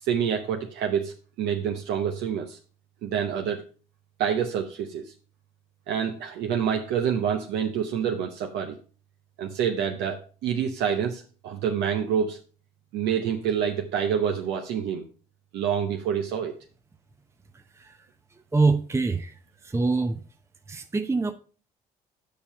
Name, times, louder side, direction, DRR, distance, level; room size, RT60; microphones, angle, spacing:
voice 1, 0.0-2.6 3.0-3.6 4.2-5.1 5.9-8.8 9.4-12.4 12.9-15.0 15.5-16.5, right 8 dB, 70° right, 0.9 m, -27 dB
voice 2, 18.5-19.3 19.6-20.2 20.7-21.3, right 3 dB, 15° right, 0.6 m, -24 dB
6.9 x 5.6 x 5.2 m
hypercardioid pair, 65°, 18 cm